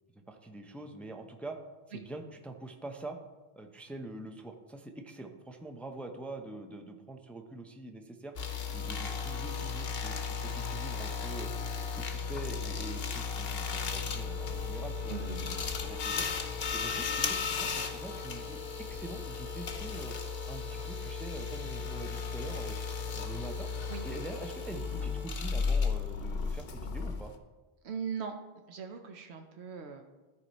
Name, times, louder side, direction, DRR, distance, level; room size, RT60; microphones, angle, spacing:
voice 1, 0.1-1.6 1.9-3.2 3.5-8.3 8.7-11.5 11.9-16.3 16.7-20.1 20.5-22.8 23.1-23.7 24.0-27.3, right 2 dB, ahead, 4 dB, 0.5 m, -44 dB
sound 1, 8.4-27.4, left 5 dB, 70° left, 1.0 m, -35 dB
sound 2, 14.1-25.3, left 1 dB, 55° right, 1.0 m, -47 dB
voice 2, 15.1-15.6 23.9-24.0 27.8-28.4 28.7-30.0, right 6 dB, 90° right, 5 dB, 1.0 m, -40 dB
13.5 x 4.7 x 4.1 m, 1.2 s
omnidirectional pair, 1.1 m